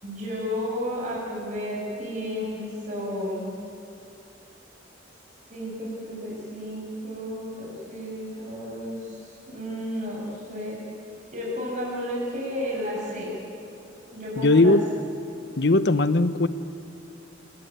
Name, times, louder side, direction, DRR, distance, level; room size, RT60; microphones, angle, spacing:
voice 1, 0.0-3.5 5.5-10.8 11.3-13.3 14.1-14.8, equal, 40° right, -4 dB, 8.0 m, -32 dB
voice 2, 14.4-14.8 15.6-16.5, left 2 dB, 65° left, 12 dB, 1.0 m, -19 dB
28.5 x 19.5 x 9.6 m, 2.8 s
head